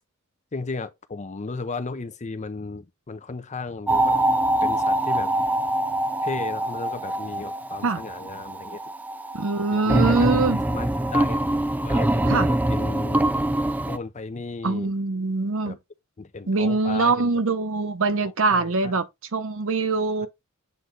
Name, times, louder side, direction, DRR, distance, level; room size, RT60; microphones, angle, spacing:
voice 1, 0.5-4.2 4.6-5.3 6.2-8.8 9.7-10.3 10.7-11.4 11.8-13.3 13.9-14.9 15.7-15.8 16.2-17.4 18.5-18.9, left 4 dB, 35° left, 0.6 m, -35 dB
sound 1, 3.9-14.0, right 1 dB, 5° right, 0.4 m, -24 dB
voice 2, 9.3-10.6 12.3-12.5 14.6-15.7 16.5-19.1 19.3-20.3, right 3 dB, 70° right, 0.8 m, -23 dB
8.0 x 3.1 x 3.9 m
head